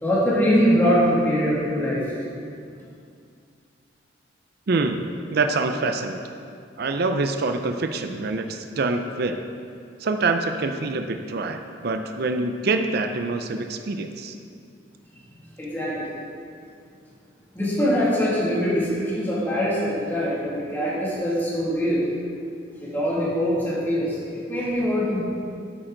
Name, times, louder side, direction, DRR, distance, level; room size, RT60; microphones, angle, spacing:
voice 1, 0.0-2.0 15.6-16.1 17.5-22.0 22.8-24.1 24.5-25.2, equal, 10° left, -8 dB, 2.3 m, -22 dB
voice 2, 4.7-6.2 6.8-9.4 10.0-14.4, right 3 dB, 55° right, 6 dB, 0.5 m, -25 dB
8.8 x 8.5 x 3.9 m, 2.4 s
head